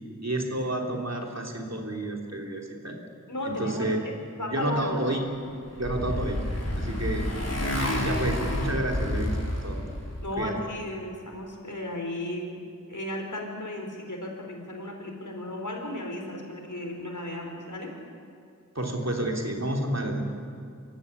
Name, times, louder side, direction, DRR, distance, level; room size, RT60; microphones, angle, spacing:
voice 1, 0.2-3.0 3.4-4.0 4.5-5.2 5.8-6.4 6.8-7.3 8.0-9.8 10.4-10.5 18.7-20.2, right 1 dB, 55° right, 1 dB, 3.4 m, -30 dB
voice 2, 3.3-5.1 10.2-12.6 12.9-17.9, left 1 dB, 70° left, 1 dB, 4.5 m, -35 dB
Motorcycle, 5.3-10.3, left 1 dB, 50° left, 3.9 m, -29 dB
25.5 x 14.0 x 9.9 m, 2.4 s
wide cardioid pair, 40°, 32 cm